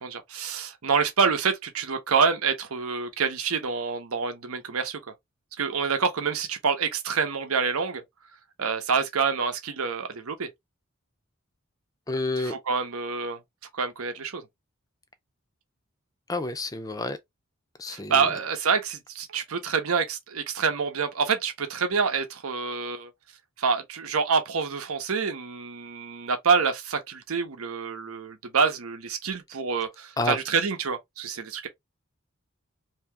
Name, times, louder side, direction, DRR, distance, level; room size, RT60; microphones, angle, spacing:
voice 1, 0.0-5.1 5.6-8.0 8.6-10.5 12.4-13.4 13.7-14.4 17.9-23.1 23.6-31.7, right 5 dB, 85° right, 0.8 m, -27 dB
voice 2, 12.1-12.6 16.3-17.2 17.8-18.3 30.2-30.4, left 2 dB, 15° left, 0.4 m, -29 dB
2.8 x 2.8 x 3.3 m
head